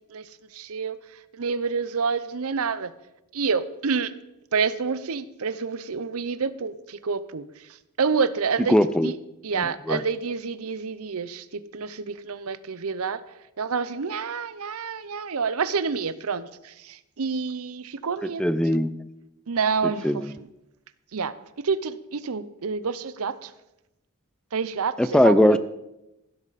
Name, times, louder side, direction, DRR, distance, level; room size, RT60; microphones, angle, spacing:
voice 1, 0.1-1.0 1.3-2.9 3.3-4.1 4.5-7.4 8.0-8.8 9.0-9.2 9.4-13.2 13.6-18.4 19.5-20.5 21.1-21.3 21.6-23.5 24.5-25.6, right 5 dB, 70° right, 15 dB, 0.7 m, -28 dB
voice 2, 8.7-9.1 9.6-10.0 18.4-19.0 20.0-20.3 25.0-25.6, equal, 5° left, 13 dB, 0.4 m, -20 dB
16.0 x 12.5 x 4.1 m, 0.92 s
head